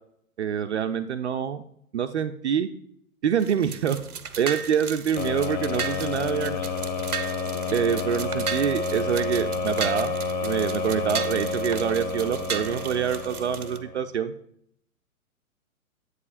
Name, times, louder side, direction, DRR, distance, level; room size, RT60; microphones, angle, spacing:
voice 1, 0.4-1.6 1.9-2.7 3.2-4.0 4.4-6.7 7.7-10.1 10.4-14.3, right 8 dB, 50° right, 9 dB, 0.5 m, -26 dB
sound 1, 3.4-13.8, right 6 dB, 90° right, 0.7 m, -36 dB
sound 2, 5.2-14.1, left 4 dB, 35° left, 0.5 m, -30 dB
7.9 x 7.4 x 2.5 m, 0.70 s
figure-of-eight pair, 115°, 43 cm